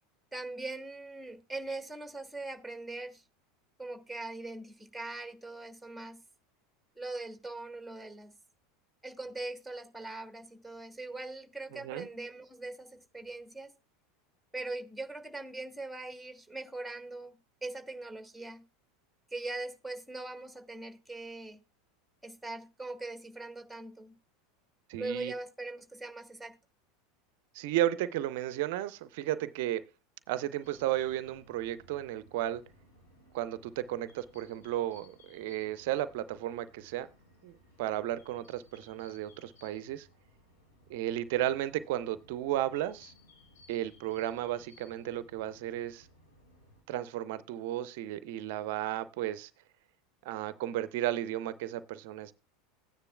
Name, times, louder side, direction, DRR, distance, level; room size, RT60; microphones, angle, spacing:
voice 1, 0.3-3.2 3.8-6.2 7.0-8.3 9.0-13.7 14.5-18.6 19.3-21.6 22.2-24.1 25.0-26.5, right 2 dB, ahead, 1.3 m, -41 dB
voice 2, 11.7-12.1 24.9-25.3 27.5-29.8 30.3-32.6 33.3-37.1 37.4-40.1 40.9-43.1 43.7-46.1 46.9-49.5 50.2-52.3, right 13 dB, 60° right, 0.5 m, -34 dB
sound 1, 30.6-46.8, left 1 dB, 70° left, 4.3 m, -60 dB
14.5 x 9.7 x 2.2 m
figure-of-eight pair, 80°, 0 cm